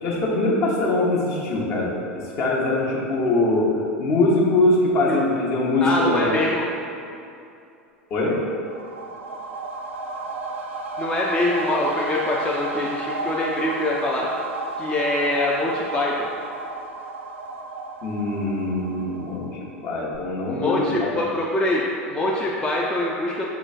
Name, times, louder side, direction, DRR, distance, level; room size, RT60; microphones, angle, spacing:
voice 1, 0.0-6.3 8.1-8.4 18.0-19.5 19.8-21.2, left 2 dB, 45° left, -4 dB, 0.9 m, -22 dB
voice 2, 5.8-6.7 11.0-14.3 14.8-16.3 20.5-23.5, left 1 dB, 10° left, -4 dB, 0.4 m, -24 dB
sound 1, 8.4-19.8 20.1-20.2, right 3 dB, 75° right, 0.4 m, -33 dB
5.3 x 3.0 x 2.4 m, 2.6 s
figure-of-eight pair, 85°, 7 cm